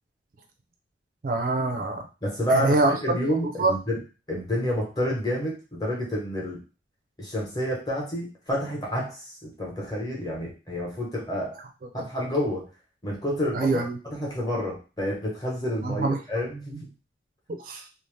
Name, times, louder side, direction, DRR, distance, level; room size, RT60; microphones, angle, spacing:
voice 1, 1.2-2.1 2.5-2.9 3.6-3.7 13.5-14.0 15.8-16.2 16.7-16.8 17.5-17.8, right 3 dB, 50° right, 4 dB, 0.4 m, -24 dB
voice 2, 2.2-4.0 4.3-6.6 7.2-11.6 11.9-12.7 13.0-16.9, equal, 20° left, -3 dB, 0.9 m, -29 dB
2.6 x 2.0 x 3.1 m, 0.33 s
head